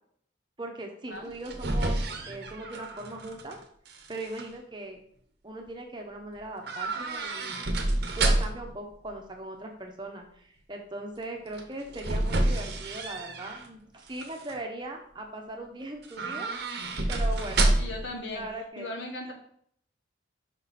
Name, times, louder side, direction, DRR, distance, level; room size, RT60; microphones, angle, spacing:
voice 1, 0.6-3.6 4.1-5.0 5.4-7.6 8.1-16.5 16.8-17.8 18.3-18.9, right 2 dB, 25° right, 2 dB, 0.8 m, -39 dB
sound 1, 1.2-3.5 3.9-4.4 6.6-8.7 11.5-13.7 14.1-14.6 16.0-18.1 18.4-18.5, right 2 dB, 55° right, 0.8 m, -29 dB
voice 2, 17.8-18.4 18.8-19.3, left 2 dB, 65° left, 1 dB, 1.5 m, -37 dB
5.6 x 5.3 x 4.2 m, 0.65 s
head